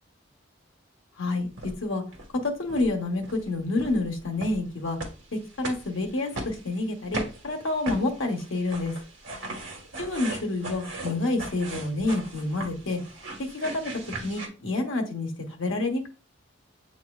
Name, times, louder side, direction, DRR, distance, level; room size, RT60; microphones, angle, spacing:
sound 1, 1.6-1.8 2.1-2.4 2.7-2.9 3.2-3.4 3.8-14.5, right 1 dB, 60° right, 1.4 m, -38 dB
voice 1, 2.4-5.0 5.6-8.9 10.0-13.0 13.5-16.1, left 2 dB, 80° left, 2 dB, 1.0 m, -28 dB
8.0 x 2.9 x 2.3 m, 0.34 s
head